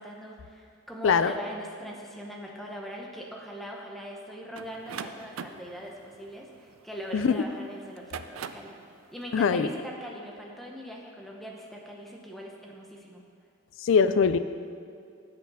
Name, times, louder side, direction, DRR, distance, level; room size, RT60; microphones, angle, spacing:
voice 1, 0.0-8.8 9.1-13.2, equal, ahead, -1 dB, 0.8 m, -41 dB
sound 1, 4.6-7.3 7.9-8.8, right 7 dB, 80° right, 0.4 m, -41 dB
voice 2, 9.3-9.7 13.8-14.4, left 6 dB, 65° left, 12 dB, 0.4 m, -22 dB
8.3 x 6.2 x 5.6 m, 2.4 s
head